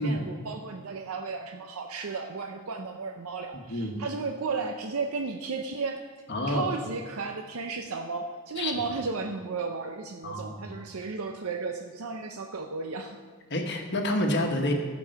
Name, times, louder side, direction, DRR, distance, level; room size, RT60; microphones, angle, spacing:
voice 1, 0.0-6.0 6.5-13.2, right 4 dB, 65° right, 4 dB, 0.6 m, -34 dB
voice 2, 3.5-4.0 6.3-6.7 8.6-8.7 10.2-10.7 13.5-14.7, left 1 dB, 50° left, 2 dB, 1.3 m, -28 dB
13.5 x 5.3 x 6.5 m, 1.5 s
head